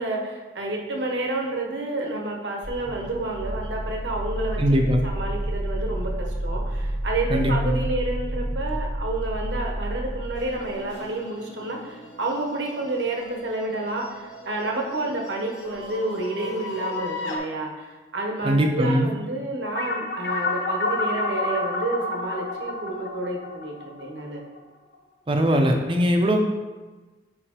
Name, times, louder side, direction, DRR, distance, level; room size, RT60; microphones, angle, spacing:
voice 1, 0.0-4.6 5.0-24.4, right 2 dB, 70° right, 0 dB, 0.9 m, -30 dB
sound 1, 2.6-10.8, right 1 dB, 25° left, 1.3 m, -30 dB
voice 2, 4.6-5.0 7.3-7.9 18.4-19.1 25.3-26.4, equal, 30° right, 3 dB, 0.6 m, -21 dB
sound 2, 10.3-17.4, left 3 dB, 70° left, 0.9 m, -39 dB
sound 3, 19.7-24.6, left 2 dB, 55° left, 0.6 m, -28 dB
6.6 x 4.9 x 2.9 m, 1.2 s
head